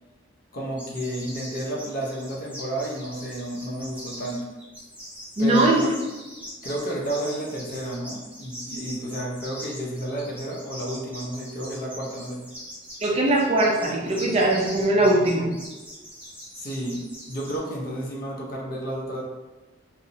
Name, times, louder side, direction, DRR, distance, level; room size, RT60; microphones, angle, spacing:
voice 1, 0.5-4.4 5.4-5.9 6.6-12.4 16.6-19.2, right 1 dB, 50° left, -2 dB, 0.6 m, -31 dB
sound 1, 0.8-17.6, equal, 10° right, 0.7 m, -41 dB
voice 2, 5.4-5.9 13.0-15.6, right 1 dB, 35° right, -1 dB, 0.4 m, -21 dB
2.8 x 2.0 x 2.6 m, 1.1 s
head